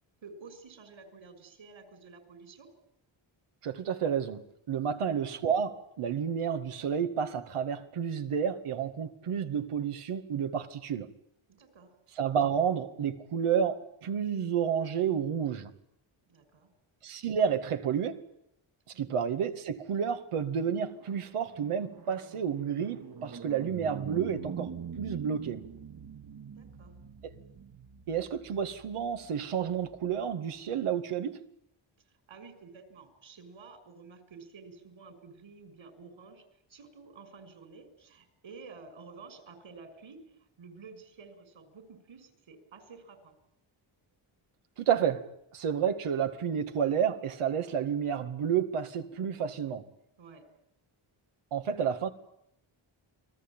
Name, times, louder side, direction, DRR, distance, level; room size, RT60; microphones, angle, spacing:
voice 1, 0.2-2.7 4.8-5.0 11.5-11.9 16.3-16.7 18.9-19.1 26.6-26.9 32.3-40.2 40.6-43.3 50.2-50.4, right 4 dB, 70° right, 6.5 m, -51 dB
voice 2, 3.6-4.4 4.7-11.1 12.2-15.7 17.0-18.2 19.0-25.7 27.2-27.3 28.1-31.4 44.8-49.8 51.5-52.1, right 8 dB, 90° right, 2.2 m, -30 dB
sound 1, 20.7-30.2, right 6 dB, 45° right, 1.7 m, -44 dB
30.0 x 21.0 x 9.0 m
cardioid pair, 75°, 49 cm